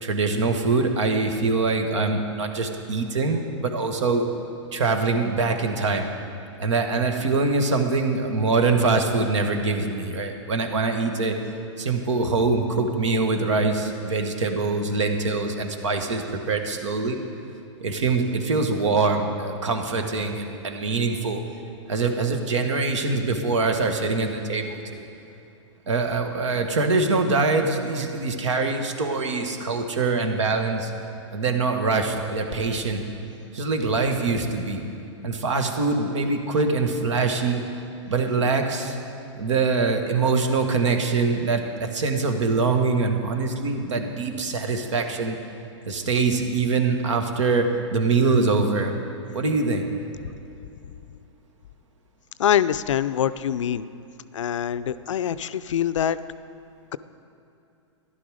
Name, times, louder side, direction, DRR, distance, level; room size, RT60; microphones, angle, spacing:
voice 1, 0.0-4.2 4.7-6.1 6.6-11.3 11.8-17.2 17.8-21.4 21.9-25.0 25.9-30.9 31.3-33.0 33.5-34.8 35.2-37.6 38.1-39.0 39.4-45.4 45.9-48.9 49.3-49.8, right 3 dB, 75° right, 5 dB, 1.5 m, -24 dB
voice 2, 52.4-53.9 54.3-56.2, left 10 dB, 80° left, 14 dB, 0.5 m, -24 dB
13.0 x 11.0 x 4.9 m, 2.7 s
hypercardioid pair, 125°, 16 cm